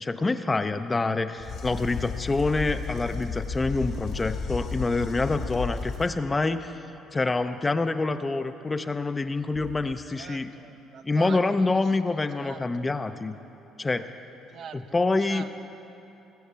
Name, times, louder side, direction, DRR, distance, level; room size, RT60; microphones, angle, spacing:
voice 1, 0.0-6.8 7.1-10.5 11.0-13.4 13.8-14.1 14.7-15.4, left 3 dB, 20° left, 9 dB, 0.6 m, -26 dB
sound 1, 1.4-6.3 9.5-9.9, left 5 dB, 60° left, 1.0 m, -34 dB
voice 2, 10.1-11.7 12.1-12.9 14.5-15.0 15.2-15.5, right 7 dB, 60° right, 8 dB, 0.8 m, -44 dB
18.5 x 7.3 x 6.8 m, 2.9 s
cardioid pair, 90°, 0 cm